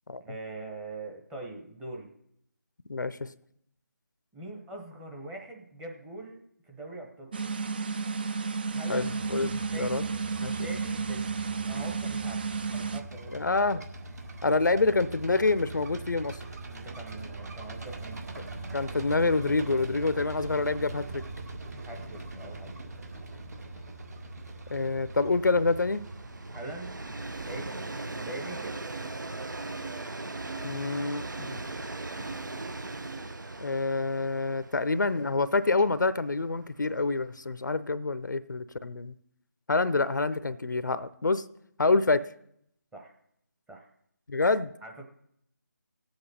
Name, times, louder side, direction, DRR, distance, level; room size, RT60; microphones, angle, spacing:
voice 1, 0.2-2.1 4.3-7.5 8.7-9.1 9.7-11.4 11.6-12.4 12.7-13.5 16.7-18.2 21.8-22.7 26.5-27.0 27.4-28.9 42.9-43.1 43.7-43.9 44.8-45.0, right 2 dB, 5° right, 0 dB, 0.9 m, -42 dB
voice 2, 2.9-3.3 8.9-10.0 10.4-10.7 13.3-13.8 14.4-16.4 18.7-21.2 24.7-26.0 30.6-31.6 33.6-39.1 39.7-41.4 41.8-42.3 44.3-44.7, left 3 dB, 75° left, 15 dB, 0.6 m, -27 dB
sound 1, 7.3-13.0, right 5 dB, 30° right, 0.4 m, -32 dB
sound 2, 9.0-27.6, right 2 dB, 55° right, 1.9 m, -42 dB
Train, 19.4-19.6 19.9-20.0 20.3-37.7, right 2 dB, 75° right, 1.0 m, -40 dB
18.5 x 7.9 x 4.2 m, 0.74 s
figure-of-eight pair, 160°, 10 cm